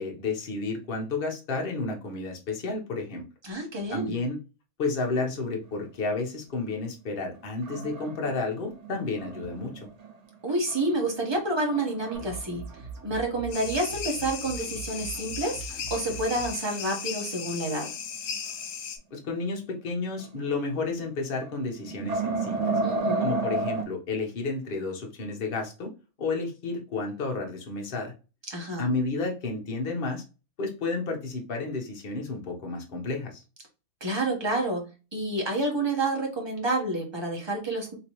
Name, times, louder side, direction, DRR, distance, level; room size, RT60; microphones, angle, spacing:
voice 1, 0.0-3.2 3.9-4.4 4.8-9.9 19.1-22.7 23.2-25.9 26.2-28.1 28.8-30.2 30.6-33.4, left 3 dB, 45° left, 1 dB, 1.0 m, -31 dB
voice 2, 3.4-4.1 10.4-12.7 13.0-17.9 22.8-23.3 28.5-28.9 34.0-34.9 35.1-37.9, right 2 dB, 20° right, 0 dB, 0.9 m, -29 dB
sound 1, 7.0-10.1 10.6-11.2 11.7-12.8 13.1-13.2 13.7-13.8 16.0-16.1 16.7-17.9 18.3-18.4 20.1-20.5 20.9-21.0 21.4-23.8, right 3 dB, 80° right, 0.3 m, -32 dB
sound 2, 12.1-16.5, right 5 dB, 60° right, 1.2 m, -41 dB
sound 3, 13.5-19.0, left 7 dB, 70° left, 1.0 m, -36 dB
3.3 x 2.9 x 2.9 m, 0.31 s
omnidirectional pair, 1.5 m